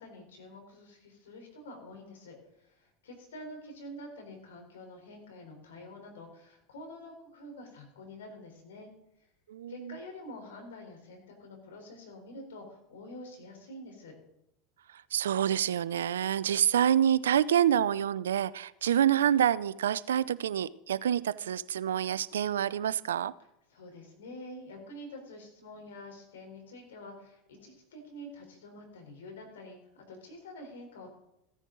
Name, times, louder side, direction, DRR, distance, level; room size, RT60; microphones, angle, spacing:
voice 1, 0.0-8.9 9.7-14.2 23.7-31.2, left 1 dB, 85° left, 3 dB, 3.7 m, -47 dB
voice 2, 9.5-9.9 15.1-23.3, right 10 dB, 85° right, 18 dB, 0.4 m, -27 dB
15.5 x 9.9 x 3.8 m, 0.82 s
hypercardioid pair, 90°, 0 cm